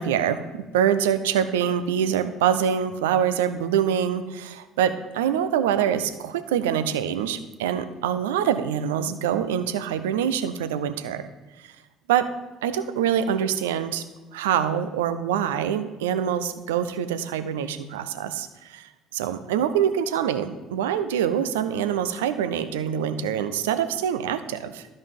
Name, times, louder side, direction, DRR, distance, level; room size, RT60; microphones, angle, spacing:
voice 1, 0.0-11.2 12.1-12.3 12.6-14.0 14.3-24.9, right 9 dB, 75° right, 11 dB, 0.6 m, -25 dB
12.5 x 5.4 x 5.3 m, 1.2 s
figure-of-eight pair, 55°, 0 cm